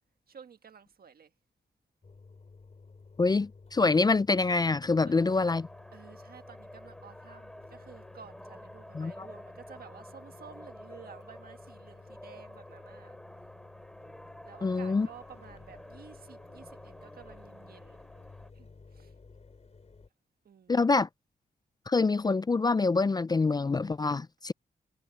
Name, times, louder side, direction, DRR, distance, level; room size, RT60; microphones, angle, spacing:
voice 1, 0.3-1.3 5.0-5.3 5.9-13.2 14.4-18.0 18.5-19.1 20.4-20.8, right 7 dB, 65° right, 1.5 m, -52 dB
Engine, 2.0-20.1, left 4 dB, 40° left, 5.9 m, -54 dB
voice 2, 3.2-5.7 8.9-9.3 14.6-15.1 20.7-21.1 21.9-24.5, left 3 dB, 25° left, 0.4 m, -26 dB
sound 1, 5.1-18.5, equal, 5° left, 3.3 m, -50 dB
cardioid pair, 90°, 17 cm